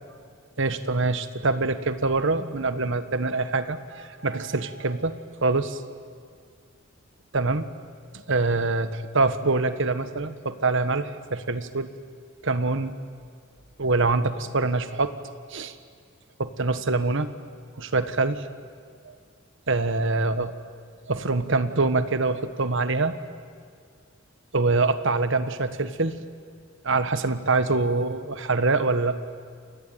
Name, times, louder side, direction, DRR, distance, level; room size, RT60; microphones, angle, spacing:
voice 1, 0.6-5.8 7.3-7.6 8.1-11.9 12.4-12.9 13.8-15.1 15.5-15.7 16.4-17.3 17.8-18.4 19.0-19.1 19.7-20.5 21.1-23.2 24.5-26.2 26.8-29.2, right 3 dB, 65° right, 11 dB, 1.4 m, -25 dB
28.5 x 22.0 x 9.3 m, 2.1 s
head